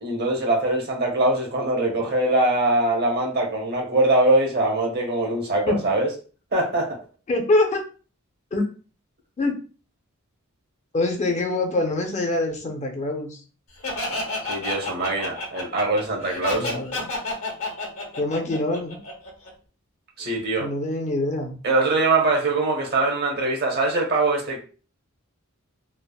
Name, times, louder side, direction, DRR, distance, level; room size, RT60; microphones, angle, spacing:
voice 1, 0.0-6.1 6.5-7.0 14.4-16.7 20.2-20.7 21.6-24.6, right 2 dB, 50° right, 1 dB, 0.9 m, -22 dB
voice 2, 7.3-7.8 8.5-8.7 9.4-9.5 10.9-13.4 16.5-17.1 18.2-19.0 20.2-20.3 20.6-21.6, left 2 dB, 35° left, 3 dB, 0.5 m, -24 dB
Laughter, 13.8-19.5, left 2 dB, 75° left, 0.9 m, -30 dB
3.3 x 2.0 x 2.3 m, 0.37 s
head